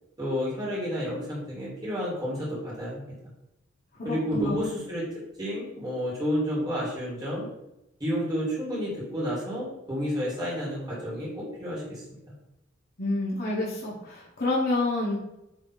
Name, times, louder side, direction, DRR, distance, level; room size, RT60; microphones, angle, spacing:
voice 1, 0.2-3.1 4.0-5.0 5.4-7.5 8.0-12.0, equal, 20° right, -6 dB, 2.0 m, -30 dB
voice 2, 4.1-4.6 13.0-15.2, left 2 dB, 50° left, -6 dB, 1.5 m, -28 dB
8.7 x 3.0 x 4.1 m, 0.88 s
head